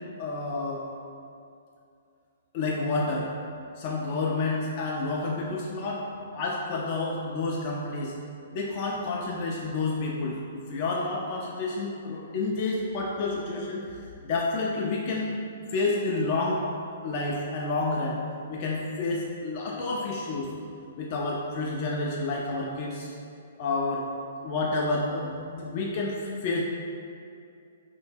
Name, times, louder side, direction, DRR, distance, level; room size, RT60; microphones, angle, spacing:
voice 1, 0.2-0.8 2.5-3.3 3.8-6.0 6.3-8.2 8.5-15.3 15.7-16.6 17.0-18.2 18.5-20.5 21.0-23.1 23.6-24.1 24.4-26.6, left 3 dB, 40° left, -3 dB, 0.3 m, -29 dB
2.7 x 2.0 x 3.2 m, 2.5 s
figure-of-eight pair, 120°, 0 cm